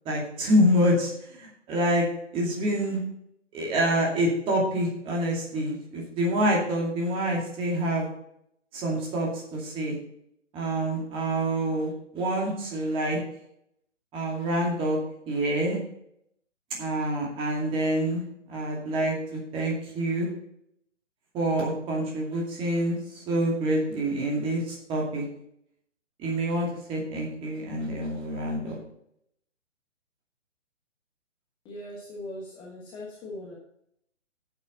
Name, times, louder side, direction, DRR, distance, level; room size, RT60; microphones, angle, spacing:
voice 1, 0.0-2.1 2.3-3.0 3.5-8.1 8.7-9.9 10.5-13.2 14.1-15.0 15.3-15.8 16.8-20.3 21.3-25.2 26.2-28.8, right 1 dB, 15° right, -2 dB, 2.4 m, -27 dB
voice 2, 31.6-33.6, left 1 dB, 15° left, -3 dB, 1.4 m, -40 dB
11.0 x 8.3 x 4.0 m, 0.73 s
figure-of-eight pair, 135°, 37 cm